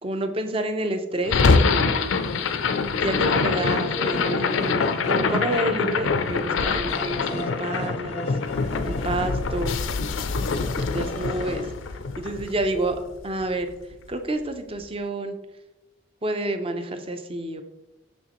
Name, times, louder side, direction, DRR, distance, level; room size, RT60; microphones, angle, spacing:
voice 1, 0.0-2.1 2.9-8.3 8.9-9.8 10.9-11.6 12.2-13.7 14.1-15.4 16.2-17.6, right 1 dB, 30° right, 7 dB, 0.6 m, -29 dB
sound 1, 1.2-13.5, left 4 dB, 80° left, 0.5 m, -24 dB
sound 2, 1.7-11.7, left 1 dB, 30° left, 0.5 m, -36 dB
6.3 x 6.2 x 3.0 m, 0.98 s
head